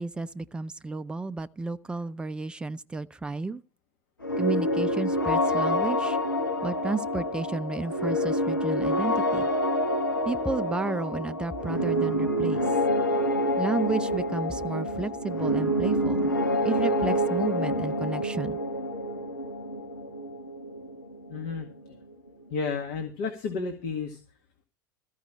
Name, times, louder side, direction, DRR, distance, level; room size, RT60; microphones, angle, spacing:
voice 1, 0.0-3.6 4.4-6.2 6.6-9.5 10.2-12.6 13.6-16.3 16.6-18.6, right 3 dB, 10° right, 0.6 m, -32 dB
sound 1, 4.2-21.9, equal, 85° left, 1.3 m, -27 dB
voice 2, 21.3-22.0 22.5-24.2, left 5 dB, 50° left, 1.9 m, -32 dB
14.0 x 5.5 x 8.6 m
figure-of-eight pair, 85°, 11 cm